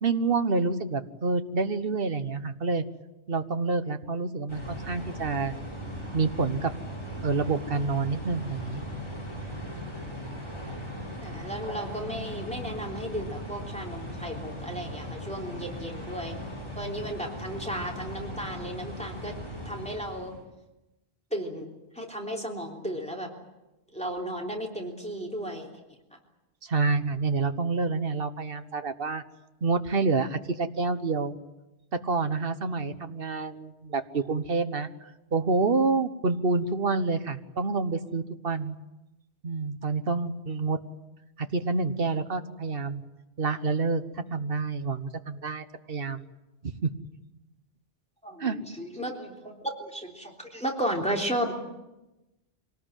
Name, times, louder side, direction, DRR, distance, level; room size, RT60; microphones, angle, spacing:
voice 1, 0.0-2.8 3.3-5.5 6.1-6.7 7.2-8.8 26.6-29.2 29.6-31.4 31.9-34.9 35.3-38.8 39.4-40.8 41.4-43.0 43.4-46.3 46.6-46.9 48.4-48.6, right 4 dB, 55° right, 10 dB, 1.4 m, -28 dB
sound 1, 4.5-20.4, equal, 25° left, 7.2 m, -38 dB
voice 2, 11.2-16.3 16.8-19.3 19.6-20.3 21.3-21.7 21.9-23.3 23.9-25.7 48.2-51.5, equal, 5° left, 0 dB, 3.4 m, -34 dB
25.0 x 19.0 x 9.1 m, 1.0 s
omnidirectional pair, 1.2 m